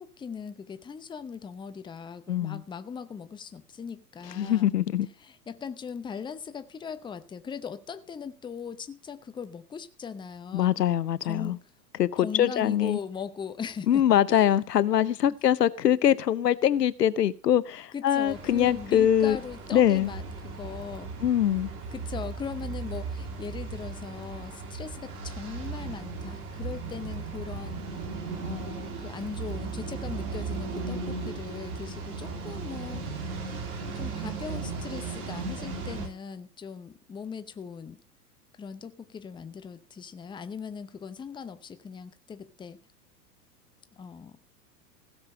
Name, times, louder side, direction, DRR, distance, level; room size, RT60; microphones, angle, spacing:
voice 1, 0.0-4.7 5.2-10.9 11.2-11.6 12.2-14.5 15.3-15.4 17.9-21.1 21.9-33.0 33.8-38.0 38.6-42.8 44.0-44.4, left 6 dB, 10° left, 0.8 m, -39 dB
voice 2, 2.3-2.6 4.4-5.1 10.5-11.6 12.0-13.0 13.9-19.4 19.7-20.1 21.2-21.7, left 10 dB, 75° left, 0.9 m, -23 dB
sound 1, 18.3-36.1, right 4 dB, 60° right, 3.9 m, -36 dB
16.5 x 6.8 x 6.5 m
figure-of-eight pair, 100°, 48 cm